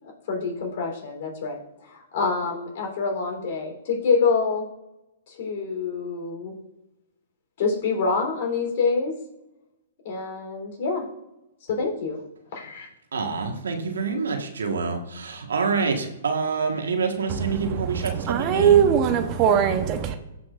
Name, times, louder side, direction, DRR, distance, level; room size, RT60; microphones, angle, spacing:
voice 1, 0.0-4.7 5.3-6.5 7.6-9.1 10.0-11.0 11.7-12.2 12.5-12.9, left 4 dB, 55° left, 0 dB, 3.5 m, -26 dB
voice 2, 13.1-18.8, right 4 dB, 80° right, 4 dB, 1.5 m, -27 dB
voice 3, 17.3-20.2, right 8 dB, 35° right, 7 dB, 0.9 m, -21 dB
16.5 x 5.9 x 2.5 m, 0.91 s
hypercardioid pair, 130°, 0 cm